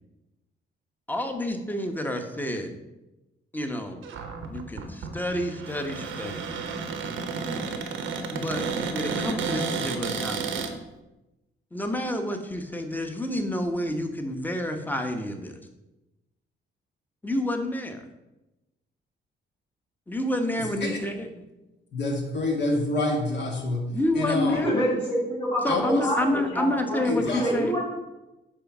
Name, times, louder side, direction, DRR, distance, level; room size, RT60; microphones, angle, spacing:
voice 1, 1.1-2.7 3.5-4.0 4.5-6.5 8.3-10.6 11.7-15.6 17.2-18.0 20.1-21.3 23.9-24.8 25.6-27.7, left 1 dB, 10° left, 5 dB, 1.0 m, -29 dB
Cupboard open or close, 4.0-10.7, right 5 dB, 85° right, 0.9 m, -31 dB
voice 2, 20.6-21.0 21.9-23.9 24.2-24.6 25.7-26.1 27.1-27.5, left 2 dB, 65° left, 1 dB, 1.9 m, -27 dB
voice 3, 24.5-27.8, equal, 25° left, -7 dB, 2.9 m, -27 dB
8.3 x 3.5 x 6.0 m, 1.0 s
cardioid pair, 90°, 20 cm